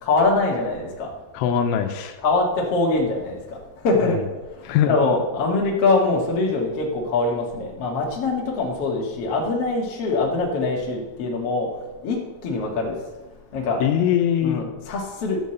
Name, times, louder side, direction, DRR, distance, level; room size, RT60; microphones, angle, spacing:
voice 1, 0.0-1.1 2.2-3.4 3.8-4.2 4.9-11.7 12.0-12.2 12.4-12.9 13.5-13.8 14.4-15.4, left 3 dB, 45° left, -2 dB, 2.1 m, -23 dB
voice 2, 1.3-2.2 4.0-4.2 4.6-5.0 13.8-14.6, left 9 dB, 80° left, 6 dB, 3.2 m, -21 dB
13.5 x 5.3 x 7.9 m, 1.1 s
omnidirectional pair, 5.6 m